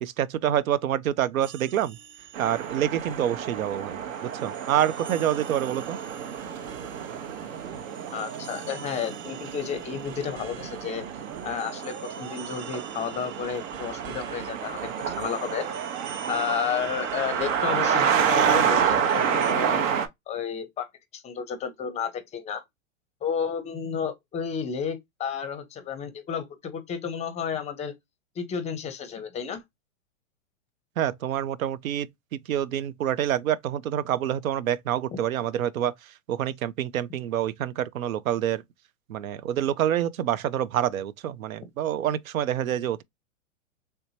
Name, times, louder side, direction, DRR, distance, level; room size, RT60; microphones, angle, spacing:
voice 1, 0.0-2.0 2.4-6.0 31.0-38.6 39.1-43.0, right 11 dB, 90° right, 0.6 m, -27 dB
sound 1, 1.4-19.5, right 8 dB, 30° right, 0.7 m, -43 dB
sound 2, 2.3-20.1, right 7 dB, 70° right, 0.9 m, -29 dB
voice 2, 8.1-11.0 11.4-15.7 16.3-19.8 20.3-20.9 21.1-22.6 23.2-27.9 28.4-29.6, left 7 dB, 15° left, 0.5 m, -32 dB
3.4 x 2.8 x 2.7 m
hypercardioid pair, 125°, 40 cm